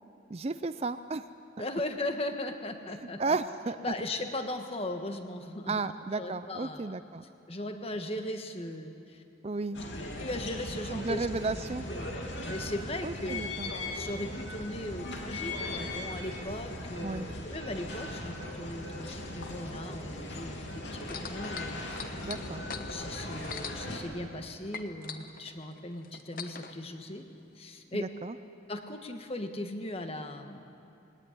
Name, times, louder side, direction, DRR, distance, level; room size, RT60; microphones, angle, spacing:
voice 1, 0.3-1.2 3.2-3.8 5.7-7.2 9.4-9.8 10.9-11.9 13.0-13.7 17.0-17.3 22.2-22.6 27.9-28.3, right 3 dB, 30° right, 12 dB, 0.5 m, -33 dB
voice 2, 1.6-3.4 3.8-5.8 6.2-6.9 7.5-9.2 10.2-11.3 11.9-13.4 13.9-22.0 22.7-27.2 27.5-28.1 28.7-30.6, left 1 dB, 30° left, 6 dB, 1.4 m, -38 dB
sound 1, 9.7-24.0, left 1 dB, 65° left, 3.1 m, -39 dB
sound 2, 21.0-24.4 24.7-26.7 27.5-27.6, left 6 dB, 45° left, 1.1 m, -41 dB
21.0 x 17.5 x 9.9 m, 2.6 s
head